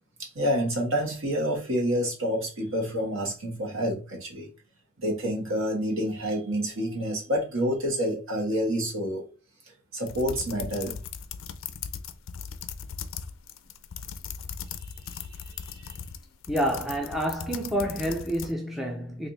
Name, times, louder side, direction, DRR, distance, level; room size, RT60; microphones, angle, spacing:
voice 1, 0.3-4.5 5.0-9.2 9.9-11.0 15.7-16.0, equal, 65° right, 1.4 m, -28 dB
sound 1, 10.1-18.5, left 7 dB, 65° left, 0.4 m, -38 dB
voice 2, 16.5-19.3, equal, ahead, 0.4 m, -28 dB
3.2 x 2.6 x 4.0 m
head